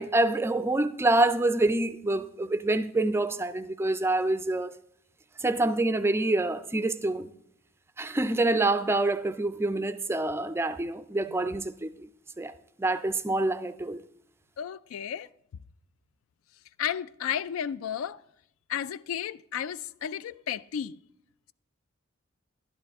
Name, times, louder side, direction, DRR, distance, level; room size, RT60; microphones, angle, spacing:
voice 1, 0.0-4.8 5.4-7.3 8.0-12.1 12.4-12.5 12.8-14.0, right 2 dB, 10° right, 0.3 m, -26 dB
voice 2, 14.6-15.3 16.8-18.2 18.7-21.0, left 9 dB, 85° left, 0.3 m, -33 dB
12.0 x 10.5 x 3.5 m
head